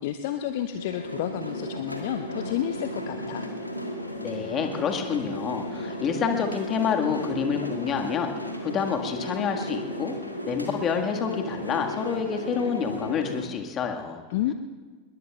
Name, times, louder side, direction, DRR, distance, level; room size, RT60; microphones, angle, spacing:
voice 1, 0.0-3.5 14.3-14.5, left 11 dB, 50° left, 8 dB, 0.7 m, -30 dB
sound 1, 0.8-13.5, equal, 90° left, 1.8 m, -34 dB
voice 2, 4.2-8.3 8.6-10.2 10.5-14.2, left 6 dB, 30° left, 4 dB, 1.8 m, -28 dB
26.5 x 21.5 x 2.4 m, 1.4 s
figure-of-eight pair, 90°, 0 cm